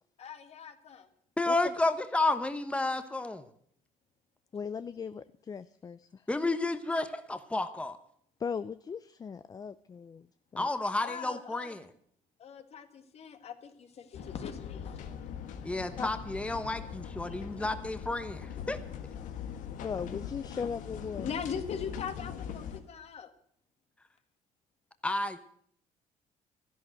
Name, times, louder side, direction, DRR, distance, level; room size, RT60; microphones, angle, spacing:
voice 1, 0.2-1.1 11.0-11.7 12.4-15.0 17.3-17.4 21.2-23.3, left 7 dB, 50° left, 9 dB, 1.8 m, -41 dB
voice 2, 1.4-3.5 6.3-8.0 10.6-11.9 15.6-18.8 25.0-25.4, left 2 dB, 10° left, 10 dB, 1.1 m, -31 dB
voice 3, 4.5-6.2 8.4-10.3 10.5-10.7 16.0-16.1 19.7-21.3, left 6 dB, 30° left, 14 dB, 0.5 m, -38 dB
sound 1, 14.1-22.8, left 8 dB, 75° left, 1.6 m, -41 dB
12.5 x 11.5 x 7.8 m, 0.63 s
cardioid pair, 100°, 13 cm